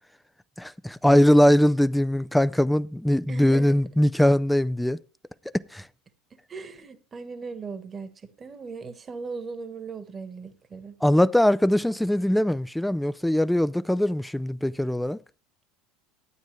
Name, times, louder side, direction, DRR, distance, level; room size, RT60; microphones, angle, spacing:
voice 1, 0.6-5.0 5.5-5.9 11.0-15.2, left 1 dB, 5° left, 0.5 m, -21 dB
voice 2, 3.3-3.8 6.3-11.0, right 4 dB, 30° right, 1.4 m, -38 dB
11.5 x 9.3 x 3.2 m
hypercardioid pair, 75°, 0 cm